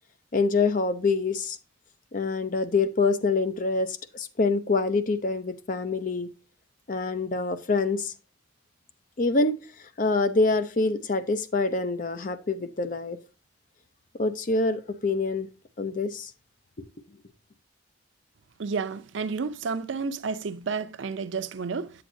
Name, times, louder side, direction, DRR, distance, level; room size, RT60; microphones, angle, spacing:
voice 1, 0.3-1.6 2.1-6.3 6.9-8.1 9.2-9.5 10.0-13.2 14.2-15.5 15.8-16.3, left 3 dB, 45° left, 0.5 m, -25 dB
voice 2, 18.6-21.9, right 5 dB, 80° right, 0.5 m, -31 dB
7.8 x 7.7 x 2.6 m
head